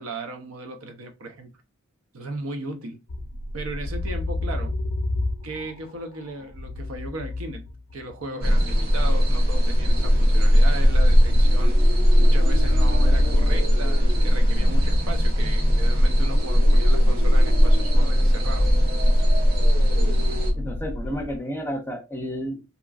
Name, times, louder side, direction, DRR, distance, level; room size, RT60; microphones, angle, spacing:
voice 1, 0.0-1.5 2.1-3.0 3.5-4.7 5.4-7.6 7.9-11.8 12.2-18.7, right 2 dB, 85° right, 0.6 m, -36 dB
sound 1, 3.1-8.3 9.4-16.2 17.4-21.4, left 2 dB, 90° left, 0.5 m, -31 dB
sound 2, 8.4-20.5, equal, 45° right, 0.7 m, -18 dB
voice 2, 20.6-22.6, equal, 10° left, 0.5 m, -31 dB
2.9 x 2.4 x 2.3 m
head